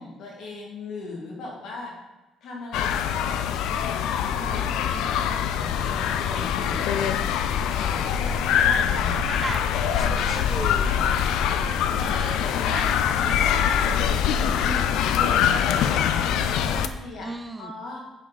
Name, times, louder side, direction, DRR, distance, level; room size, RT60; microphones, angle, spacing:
voice 1, 0.0-1.9 2.4-3.7 4.3-7.0 7.7-9.4 9.9-10.1 12.0-12.9 13.2-14.0 14.5-17.3 17.6-18.0, left 2 dB, 70° left, -2 dB, 2.0 m, -38 dB
sound 1, 2.7-16.9, left 8 dB, 90° left, 0.4 m, -24 dB
voice 2, 9.1-9.6 10.1-10.9 11.3-11.8 12.6-12.9 17.2-17.7, right 2 dB, 15° right, 8 dB, 0.4 m, -35 dB
6.0 x 4.3 x 5.0 m, 1.1 s
cardioid pair, 115°, 0 cm